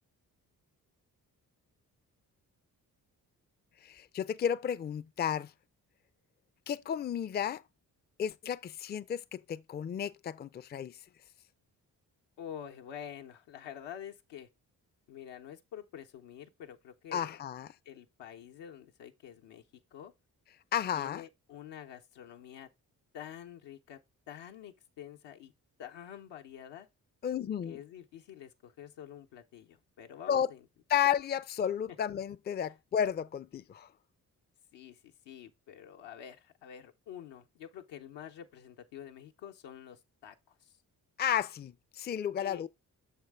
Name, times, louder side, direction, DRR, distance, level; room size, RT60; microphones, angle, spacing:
voice 1, 3.8-5.5 6.7-7.6 8.2-11.0 17.1-17.7 20.7-21.2 27.2-27.8 30.3-30.5 30.9-33.9 41.2-42.7, left 8 dB, 25° left, 0.4 m, -32 dB
voice 2, 12.4-14.5 15.1-17.4 17.8-19.6 19.9-20.1 20.9-22.7 23.1-24.0 24.3-25.5 25.8-26.9 27.7-30.7 34.7-40.7 42.4-42.6, left 9 dB, 80° left, 0.8 m, -47 dB
6.4 x 4.4 x 3.4 m
supercardioid pair, 45°, 42 cm